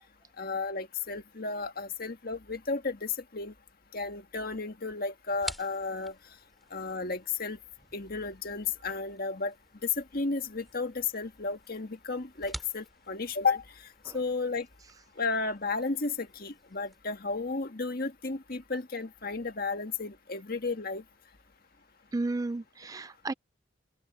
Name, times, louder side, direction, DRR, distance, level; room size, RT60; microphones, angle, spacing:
voice 1, 0.4-3.5 3.9-6.1 6.7-7.6 7.9-9.5 9.8-14.7 15.2-21.0, left 4 dB, 50° left, 1.7 m, -33 dB
sound 1, 5.4-17.0, equal, ahead, 5.7 m, -49 dB
voice 2, 22.1-23.3, right 2 dB, 20° right, 0.3 m, -33 dB
open air
head